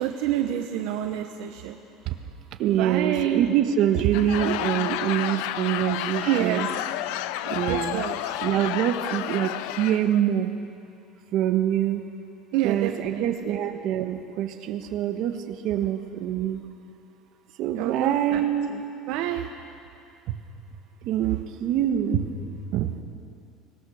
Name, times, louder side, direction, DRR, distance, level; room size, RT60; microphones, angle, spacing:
voice 1, 0.0-1.8 2.7-3.5 6.3-6.8 7.7-8.3 12.5-13.2 17.7-18.4 19.1-19.5, right 12 dB, 70° right, 5 dB, 1.0 m, -28 dB
voice 2, 2.6-6.7 7.4-8.0 8.4-10.5 11.3-12.0 12.6-15.4 15.6-16.6 17.6-18.7 21.0-22.3 22.7-22.9, right 10 dB, 50° right, 6 dB, 1.4 m, -25 dB
Laughter / Crowd, 4.0-10.2, left 13 dB, 75° left, 0.7 m, -31 dB
25.0 x 19.0 x 6.6 m, 2.5 s
cardioid pair, 170°, 0 cm